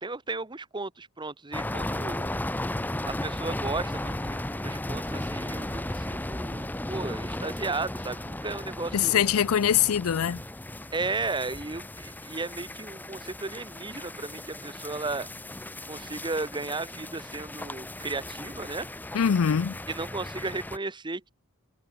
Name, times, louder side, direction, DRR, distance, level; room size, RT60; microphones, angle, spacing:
voice 1, 0.0-2.3 3.1-9.2 10.9-15.3 15.9-18.9 19.9-21.3, right 3 dB, 20° right, 1.2 m, -34 dB
sound 1, 1.5-20.8, left 1 dB, 10° left, 0.7 m, -36 dB
voice 2, 8.9-10.4 19.1-19.8, left 8 dB, 85° left, 0.5 m, -23 dB
head